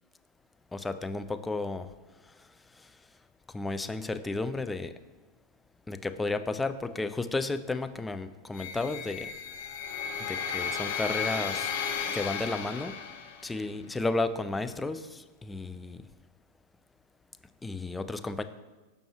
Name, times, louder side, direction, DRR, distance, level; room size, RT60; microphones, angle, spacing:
voice 1, 0.7-1.9 2.8-2.9 3.5-4.9 5.9-9.3 10.2-11.7 12.1-13.0 13.4-16.1 17.6-18.4, left 3 dB, 10° left, 10 dB, 0.3 m, -33 dB
sound 1, 8.5-13.6, left 6 dB, 55° left, 0.6 m, -34 dB
6.9 x 5.2 x 3.1 m, 1.2 s
figure-of-eight pair, 90°, 0 cm